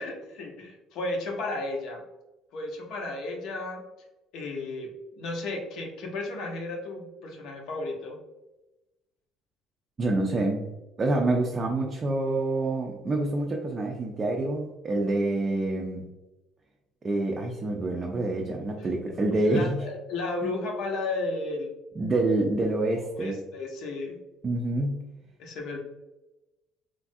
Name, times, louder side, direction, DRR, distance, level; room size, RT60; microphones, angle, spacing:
voice 1, 0.0-2.0 2.5-3.8 4.3-8.2 19.4-21.7 23.2-24.1 25.4-25.8, left 2 dB, 70° left, 1 dB, 0.7 m, -33 dB
voice 2, 10.0-10.7 11.0-16.0 17.0-19.8 20.4-20.5 22.0-23.4 24.4-25.0, right 2 dB, 25° right, 0 dB, 0.3 m, -27 dB
3.1 x 2.4 x 2.6 m, 1.0 s
cardioid pair, 135°, 0 cm